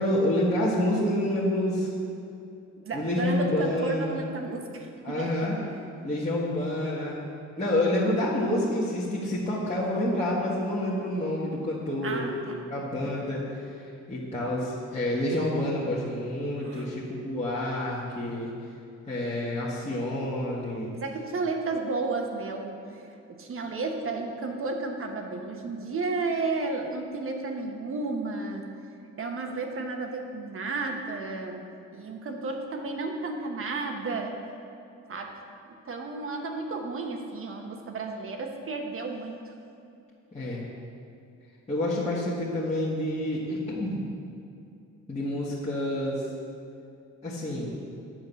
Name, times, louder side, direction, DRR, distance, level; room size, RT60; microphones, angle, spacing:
voice 1, 0.0-1.9 2.9-4.2 5.0-5.6 6.0-7.2 7.6-12.4 12.7-18.5 19.1-20.9 40.3-40.6 41.7-44.0 45.1-46.3 47.2-47.8, left 1 dB, 20° left, -8 dB, 1.6 m, -28 dB
voice 2, 2.8-5.3 12.0-12.6 13.0-13.1 16.6-16.9 20.9-23.0 23.3-28.6 29.2-31.7 31.9-34.3 35.1-35.4 35.8-39.5, right 3 dB, 45° right, 3 dB, 1.2 m, -32 dB
9.0 x 4.8 x 6.9 m, 2.6 s
cardioid pair, 90°, 30 cm